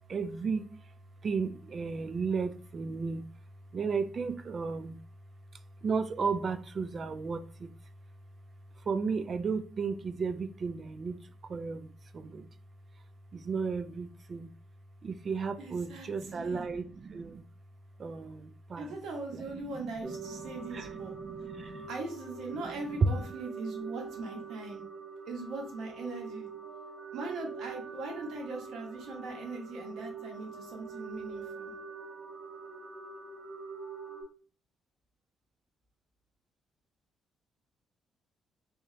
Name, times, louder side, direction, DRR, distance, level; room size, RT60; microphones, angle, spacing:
voice 1, 0.1-0.6 1.2-3.2 3.7-5.0 5.8-7.7 8.9-11.2 11.5-11.9 12.1-12.5 13.3-14.5 15.0-17.4 18.0-18.9 19.3-19.4 20.7-21.9 23.0-23.1, right 5 dB, 45° right, 0.3 m, -33 dB
voice 2, 15.6-16.7 18.8-21.1 21.9-24.8 25.3-26.5 27.1-31.7, right 3 dB, 80° right, 1.2 m, -40 dB
sound 1, 20.0-34.2, right 4 dB, 60° right, 1.4 m, -44 dB
3.4 x 3.0 x 2.8 m
cardioid pair, 90°, 0 cm